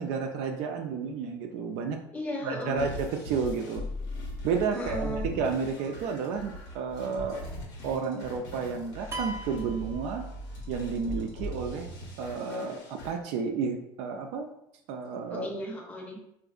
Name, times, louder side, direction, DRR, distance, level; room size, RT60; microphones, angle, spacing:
voice 1, 0.0-2.0 2.4-3.9 4.4-7.5 7.8-10.3 10.7-11.9 12.2-14.5 14.9-15.5, right 5 dB, 70° right, 3 dB, 0.4 m, -31 dB
voice 2, 2.1-2.9 4.7-5.3 15.3-16.2, left 1 dB, 15° left, -1 dB, 0.7 m, -35 dB
sound 1, 2.8-13.1, left 1 dB, 85° left, 1.2 m, -40 dB
sound 2, 4.8-5.4 7.2-7.8 9.6-10.1, left 1 dB, 55° left, 0.7 m, -44 dB
sound 3, 9.1-10.8, right 2 dB, 25° right, 0.6 m, -39 dB
3.7 x 2.5 x 2.4 m, 0.76 s
supercardioid pair, 110°, 10 cm